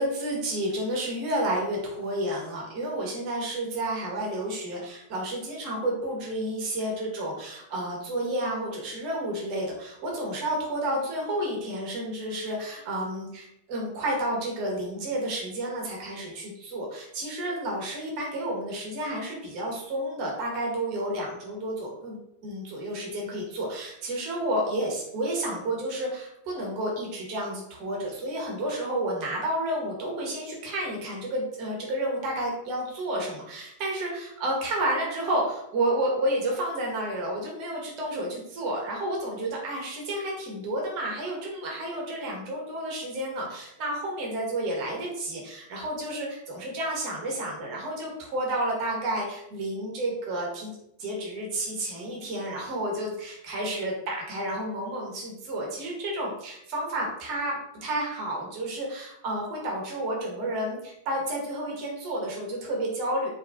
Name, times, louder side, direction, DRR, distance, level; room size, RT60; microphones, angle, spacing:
voice 1, 0.0-50.7 51.0-63.3, right 1 dB, 45° right, -2 dB, 1.3 m, -31 dB
4.3 x 3.1 x 2.5 m, 0.79 s
figure-of-eight pair, 90°, 0 cm